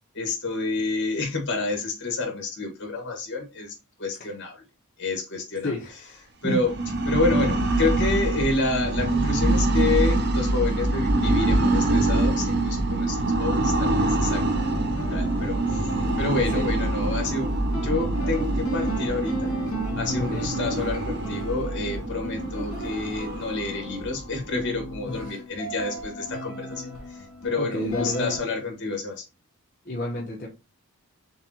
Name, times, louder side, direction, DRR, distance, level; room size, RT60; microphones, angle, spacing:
voice 1, 0.1-4.6 5.0-5.7 6.4-6.7 7.0-15.9 16.2-17.5 17.8-19.5 20.0-29.2, left 3 dB, 55° left, 1.7 m, -29 dB
voice 2, 5.6-6.6 16.5-16.7 20.3-20.5 25.1-25.4 27.5-28.4 29.8-30.5, left 1 dB, 40° left, 1.0 m, -31 dB
sound 1, 6.5-25.2, right 2 dB, 50° right, 0.6 m, -25 dB
sound 2, 14.5-28.4, right 1 dB, 70° left, 1.9 m, -35 dB
6.6 x 2.4 x 2.9 m
head